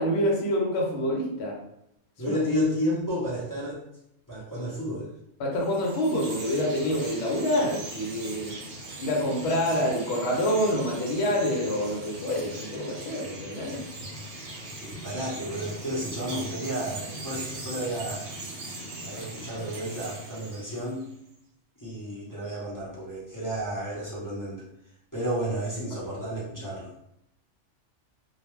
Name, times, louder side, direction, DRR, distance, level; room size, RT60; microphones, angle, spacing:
voice 1, 0.0-1.6 2.3-2.4 5.4-8.6 9.0-13.8 25.9-26.0, equal, 65° left, -1 dB, 0.8 m, -27 dB
voice 2, 2.2-3.8 4.3-5.2 14.8-18.3 19.0-21.1 21.8-24.6 25.1-26.9, equal, 25° left, -7 dB, 0.5 m, -31 dB
Chirp tweet, 5.5-21.2, right 2 dB, 60° right, 0.7 m, -40 dB
2.3 x 2.1 x 3.0 m, 0.78 s
omnidirectional pair, 1.3 m